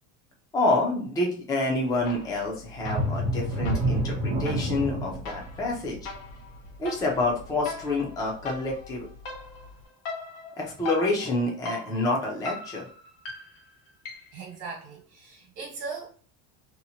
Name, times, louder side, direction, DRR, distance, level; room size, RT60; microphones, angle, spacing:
voice 1, 0.5-6.0 6.8-9.1 10.6-12.9, left 2 dB, 10° left, 0.4 m, -28 dB
sound 1, 2.1-2.5 2.9-14.5, left 3 dB, 70° left, 1.2 m, -41 dB
sound 2, 2.8-8.3 8.7-8.8 9.3-9.4, right 1 dB, 35° right, 0.7 m, -29 dB
voice 2, 14.3-16.1, right 4 dB, 55° right, 1.1 m, -39 dB
2.8 x 2.0 x 4.0 m
cardioid pair, 165°, 42 cm